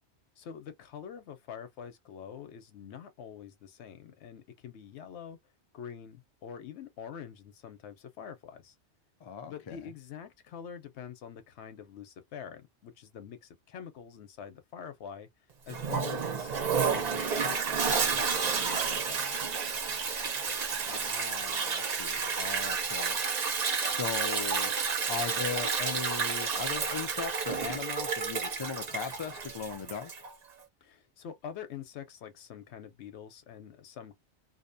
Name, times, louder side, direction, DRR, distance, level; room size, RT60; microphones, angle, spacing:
voice 1, 0.4-5.4 5.7-8.7 9.5-15.3 15.7-19.5 30.8-34.1, left 8 dB, 80° left, 0.9 m, -45 dB
voice 2, 9.2-9.9 20.9-23.2 23.7-24.7 25.1-30.1, left 6 dB, 50° left, 0.3 m, -38 dB
Toilet flush, 15.7-30.3, right 5 dB, 50° right, 0.6 m, -31 dB
2.7 x 2.1 x 2.5 m
omnidirectional pair, 1.2 m